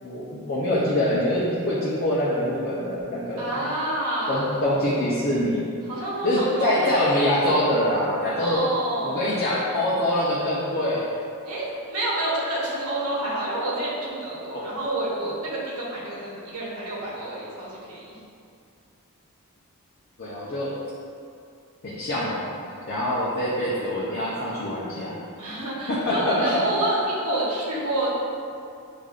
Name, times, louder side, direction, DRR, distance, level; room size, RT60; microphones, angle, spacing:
voice 1, 0.0-3.6 4.3-5.8 6.2-8.6 9.0-11.1 14.5-14.6 20.2-20.7 21.8-22.5 22.9-25.2 25.9-26.6, left 1 dB, 45° left, -8 dB, 0.5 m, -24 dB
voice 2, 3.4-4.5 5.9-6.9 8.4-9.3 11.4-18.2 25.4-28.1, right 1 dB, 80° right, -7 dB, 0.9 m, -28 dB
6.4 x 2.5 x 2.4 m, 2.4 s
head